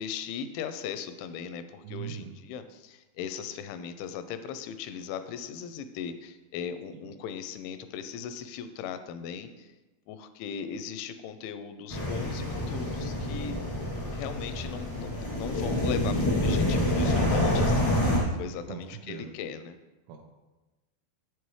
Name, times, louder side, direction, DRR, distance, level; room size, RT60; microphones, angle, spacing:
voice 1, 0.0-9.7 10.1-13.6 14.1-19.8, left 7 dB, 85° left, 10 dB, 2.9 m, -38 dB
voice 2, 1.8-2.4 18.7-18.8 19.1-19.3 20.1-20.2, right 9 dB, 90° right, 0 dB, 3.2 m, -40 dB
sound 1, 11.9-18.2, left 1 dB, 45° left, 0.4 m, -27 dB
8.3 x 7.7 x 3.1 m, 1.1 s
omnidirectional pair, 5.4 m